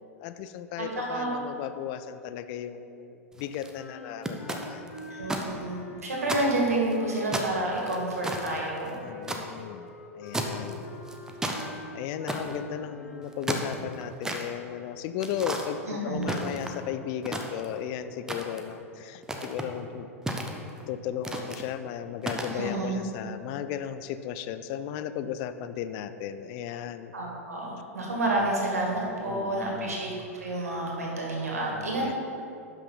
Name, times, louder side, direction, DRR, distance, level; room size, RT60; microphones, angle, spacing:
voice 1, 0.0-4.8 9.0-9.9 10.1-10.8 11.9-20.1 20.9-27.1 28.1-28.5 29.2-30.0 31.7-32.1, left 9 dB, 40° left, 12 dB, 0.4 m, -35 dB
voice 2, 0.8-1.4 5.1-9.0 15.9-16.5 22.5-23.0 27.1-32.1, right 2 dB, 75° right, -2 dB, 2.0 m, -29 dB
sound 1, 3.3-3.7 4.2-5.5 5.8-5.9 6.2-7.0 7.3-9.4 10.3-10.7 11.1-11.7 12.3-12.6 13.2-14.4 15.2-15.7 16.2-16.9 17.2-17.8 18.3-18.7 19.2-19.7 20.3-20.8 21.2-21.6 22.2-22.6, right 1 dB, 5° right, 0.8 m, -33 dB
sound 2, 3.7-13.4, left 2 dB, 70° left, 1.1 m, -45 dB
11.0 x 5.7 x 4.0 m, 2.7 s
figure-of-eight pair, 95°, 8 cm